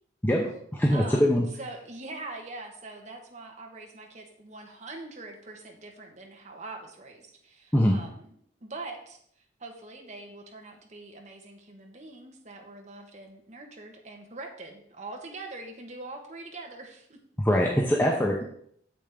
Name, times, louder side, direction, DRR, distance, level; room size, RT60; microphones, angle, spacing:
voice 1, 0.2-1.4 7.7-8.0 17.4-18.4, equal, 10° left, -1 dB, 0.8 m, -23 dB
voice 2, 0.9-1.3 1.6-8.3 8.6-9.2 9.6-17.2, right 2 dB, 40° right, 2 dB, 1.3 m, -43 dB
8.5 x 7.2 x 3.6 m, 0.65 s
head